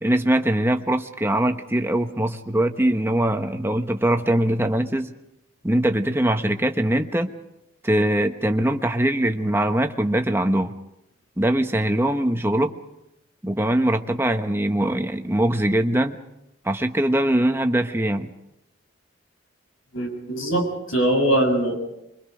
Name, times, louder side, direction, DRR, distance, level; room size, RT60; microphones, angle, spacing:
voice 1, 0.0-5.1 5.6-7.3 7.8-10.7 11.4-12.7 13.4-16.2 16.6-18.3, right 1 dB, 10° right, 6 dB, 1.1 m, -22 dB
voice 2, 19.9-21.7, right 1 dB, 90° left, 2 dB, 6.7 m, -22 dB
26.0 x 23.5 x 5.1 m, 0.86 s
head